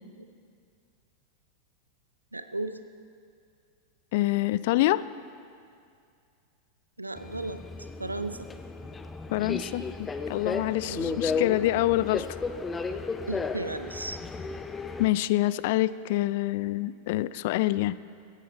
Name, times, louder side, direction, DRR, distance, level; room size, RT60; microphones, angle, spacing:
voice 1, 2.3-2.8 7.0-7.6 8.0-8.5 10.8-11.4 13.3-14.2, right 2 dB, 85° right, 10 dB, 0.7 m, -35 dB
voice 2, 4.1-5.0 9.3-12.3 15.0-18.0, left 16 dB, 50° left, 18 dB, 0.4 m, -26 dB
Subway metro underground, 7.2-15.1, left 4 dB, 15° left, 0.7 m, -34 dB
16.0 x 14.0 x 4.2 m, 2.3 s
figure-of-eight pair, 90°, 0 cm